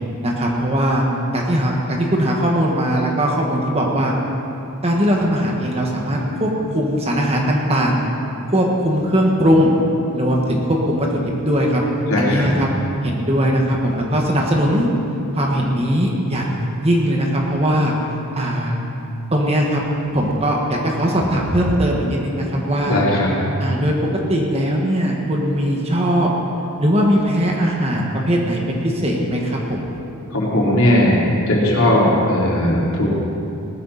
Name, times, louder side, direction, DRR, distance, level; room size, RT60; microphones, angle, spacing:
voice 1, 0.2-1.0 1.3-4.1 4.8-8.0 8.5-9.7 10.1-11.8 12.2-12.7 13.0-14.9 15.3-17.9 18.3-18.8 19.3-19.8 20.1-23.0 23.6-24.0 24.3-26.3 26.8-30.0 30.9-31.1, equal, 25° right, -1 dB, 1.7 m, -19 dB
voice 2, 12.1-12.5 22.8-23.3 30.3-31.2 31.5-33.1, left 1 dB, 70° left, -5 dB, 3.5 m, -17 dB
19.0 x 13.0 x 4.3 m, 2.7 s
head